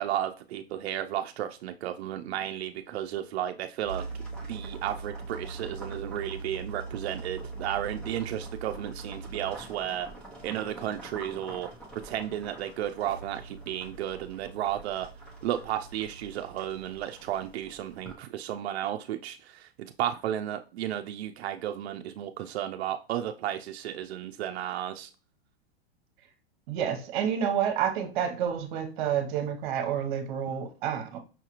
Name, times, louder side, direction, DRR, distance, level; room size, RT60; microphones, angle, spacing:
voice 1, 0.0-4.1 4.5-10.1 10.4-11.7 12.0-15.1 15.4-25.1, right 11 dB, 90° right, 0.5 m, -33 dB
sound 1, 3.8-18.1, right 3 dB, 5° left, 0.4 m, -42 dB
voice 2, 26.7-31.2, right 8 dB, 50° right, 0.9 m, -29 dB
5.6 x 2.4 x 2.9 m
supercardioid pair, 160°, 31 cm